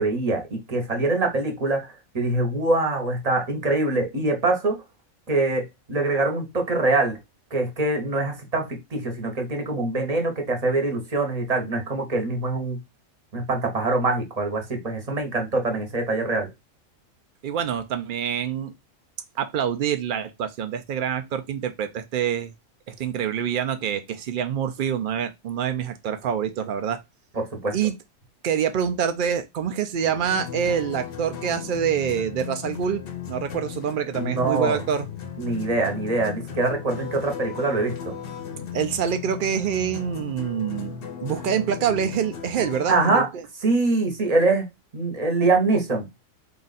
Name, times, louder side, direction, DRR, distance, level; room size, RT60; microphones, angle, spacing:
voice 1, 0.0-4.8 5.3-7.2 7.5-12.8 13.3-16.5 27.3-27.7 34.2-34.8 35.4-38.1 42.9-43.3 43.6-44.7 44.9-46.1, right 2 dB, 30° right, 0.9 m, -24 dB
voice 2, 17.4-18.7 19.4-22.5 22.9-27.0 27.7-27.9 28.4-35.1 38.7-43.3, right 8 dB, 85° right, 0.4 m, -26 dB
sound 1, 30.0-43.1, left 8 dB, 55° left, 0.8 m, -36 dB
3.8 x 2.5 x 4.0 m
omnidirectional pair, 1.4 m